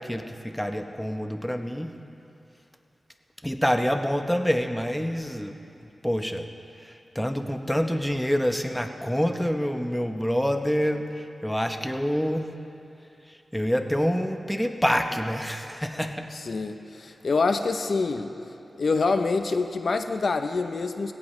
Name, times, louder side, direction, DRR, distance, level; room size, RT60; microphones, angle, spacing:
voice 1, 0.0-1.9 3.4-5.5 6.0-6.5 6.8-12.5 13.3-16.3, equal, 5° left, 5 dB, 0.9 m, -27 dB
voice 2, 16.5-18.3 18.8-21.1, left 4 dB, 65° left, 7 dB, 0.7 m, -26 dB
20.5 x 17.5 x 3.2 m, 2.7 s
wide cardioid pair, 85°, 0 cm